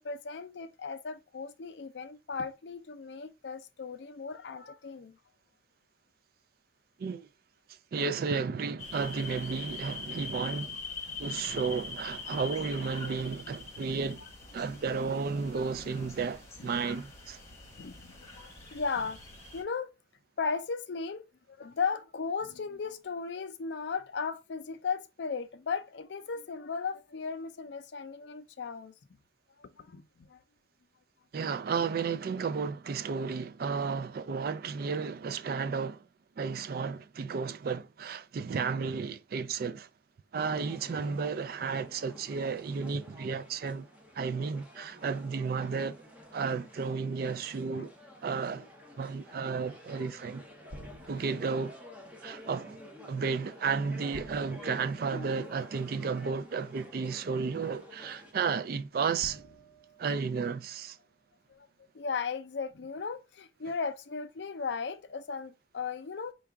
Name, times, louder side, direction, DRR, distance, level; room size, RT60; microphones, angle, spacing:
voice 1, 0.0-5.2 11.2-11.4 13.0-13.3 16.6-16.7 17.8-19.2 19.5-19.9 20.4-21.2 21.5-28.9 29.6-30.4 47.7-47.9 51.2-51.3 55.1-55.5 61.5-61.7 61.9-66.3, left 5 dB, 70° left, 0.5 m, -36 dB
voice 2, 7.7-10.8 11.2-14.2 14.5-17.4 31.3-36.1 36.4-39.9 40.3-43.9 44.1-46.0 46.3-47.9 48.2-48.7 49.0-50.5 51.1-51.8 52.2-52.8 53.1-59.4 60.0-61.0, right 5 dB, 50° right, 0.3 m, -33 dB
sound 1, 8.8-19.6, left 4 dB, 15° left, 1.2 m, -43 dB
sound 2, 40.4-58.3, left 1 dB, 10° right, 0.7 m, -51 dB
sound 3, 50.7-51.7 54.1-55.8 57.0-57.1 59.2-60.9, right 1 dB, 90° right, 0.9 m, -51 dB
4.7 x 2.3 x 3.4 m
head